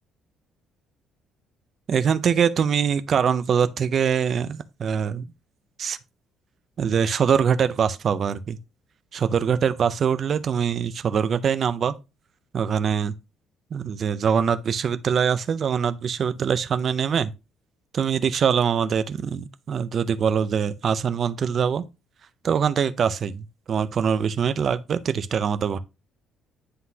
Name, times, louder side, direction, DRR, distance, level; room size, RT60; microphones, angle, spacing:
voice 1, 1.9-5.3 5.8-6.0 6.8-8.6 9.1-11.9 12.5-13.1 13.7-17.3 17.9-21.8 22.4-25.8, right 7 dB, 35° right, 0.4 m, -23 dB
9.4 x 3.9 x 2.7 m
cardioid pair, 180°, 0 cm